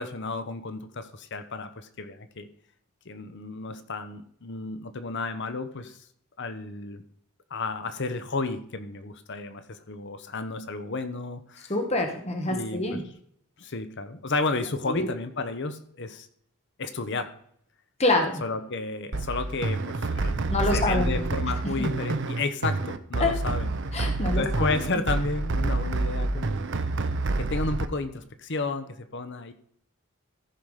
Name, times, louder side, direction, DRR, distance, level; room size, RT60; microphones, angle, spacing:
voice 1, 0.0-2.5 3.1-6.0 6.4-7.0 7.5-11.7 12.5-13.0 13.6-16.3 16.8-17.3 18.4-23.7 24.3-26.7 27.4-29.5, left 3 dB, 55° left, 10 dB, 0.9 m, -32 dB
voice 2, 11.7-13.0 14.9-15.1 18.0-18.4 20.5-21.2 21.8-21.9 23.2-23.3 23.9-24.7, left 2 dB, 30° left, 4 dB, 1.4 m, -26 dB
sound 1, 19.1-27.9, right 2 dB, 55° right, 0.7 m, -28 dB
14.5 x 5.9 x 4.9 m, 0.66 s
head